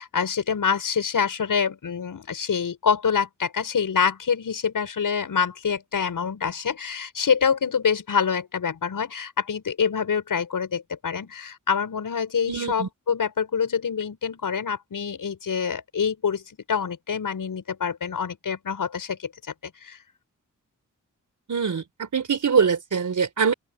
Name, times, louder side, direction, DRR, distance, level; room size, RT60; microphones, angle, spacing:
voice 1, 0.0-19.3 19.6-20.0, left 6 dB, 80° left, 7.9 m, -26 dB
voice 2, 12.5-12.9 21.5-23.5, right 6 dB, 65° right, 4.6 m, -23 dB
open air
wide cardioid pair, 135°, 32 cm